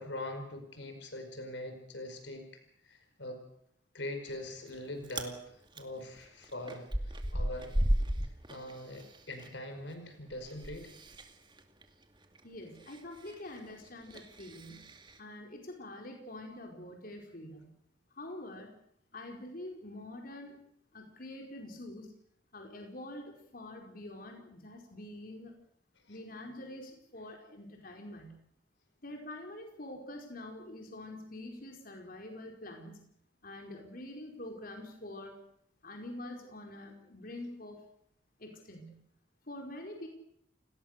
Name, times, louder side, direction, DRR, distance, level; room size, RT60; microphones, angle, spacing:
voice 1, 0.0-2.4 2.8-3.4 3.9-7.7 8.5-10.9 26.1-26.2, left 1 dB, 70° left, 6 dB, 5.0 m, -42 dB
Chewing mastication, 4.3-4.8 5.0-5.3 5.7-9.5 9.8-15.2, equal, 25° right, 2.3 m, -36 dB
voice 2, 12.4-14.9 15.2-17.7 18.2-18.7 19.1-20.6 20.9-22.1 22.5-25.5 26.1-28.4 29.0-33.0 33.4-35.4 35.8-37.8 38.4-39.0 39.5-40.1, left 1 dB, 50° left, 2 dB, 4.7 m, -45 dB
29.5 x 19.0 x 6.7 m, 0.70 s
head